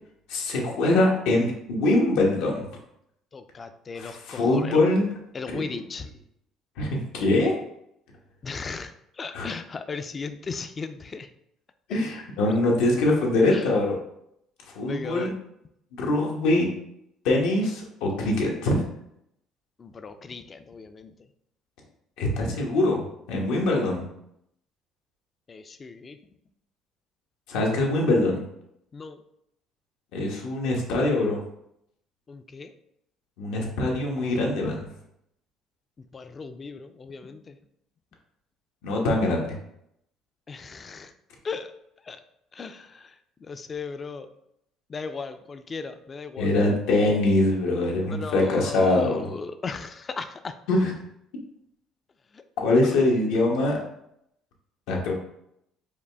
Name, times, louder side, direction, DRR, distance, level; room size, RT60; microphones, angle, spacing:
voice 1, 0.3-2.7 4.0-5.1 5.5-5.8 6.8-7.5 9.3-9.5 11.9-13.9 14.7-15.3 15.9-16.7 17.2-18.8 22.2-23.0 23.3-24.0 27.5-28.4 30.1-31.4 33.4-34.8 38.8-39.6 46.4-49.3 50.7-50.9 52.6-53.8 54.9-55.1, left 2 dB, 85° left, -1 dB, 1.1 m, -23 dB
voice 2, 3.3-4.8 5.3-6.1 8.4-11.3 13.5-13.7 14.9-15.3 19.8-21.1 25.5-26.2 28.9-29.2 32.3-32.7 36.0-37.6 40.5-41.1 41.4-41.7 42.0-42.2 42.5-44.3 44.9-46.5 48.0-50.6 52.3-52.4, left 4 dB, 30° left, 9 dB, 0.4 m, -37 dB
4.9 x 2.4 x 3.4 m, 0.76 s
cardioid pair, 115°, 0 cm